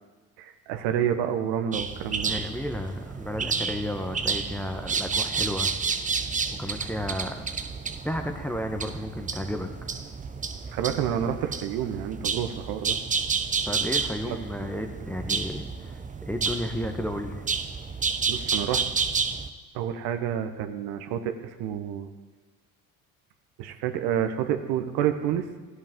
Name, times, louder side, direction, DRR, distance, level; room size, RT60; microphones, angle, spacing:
voice 1, 0.4-2.3 10.7-13.0 14.3-14.4 18.3-18.8 19.7-22.1 23.6-25.5, right 9 dB, 60° right, 7 dB, 1.1 m, -29 dB
sound 1, 1.7-19.5, right 5 dB, 20° right, 0.6 m, -30 dB
voice 2, 2.3-5.7 6.5-7.5 8.0-9.9 13.6-16.0 16.3-17.5, left 1 dB, 5° left, 4 dB, 1.0 m, -33 dB
16.0 x 8.1 x 3.7 m, 1.4 s
hypercardioid pair, 65°, 44 cm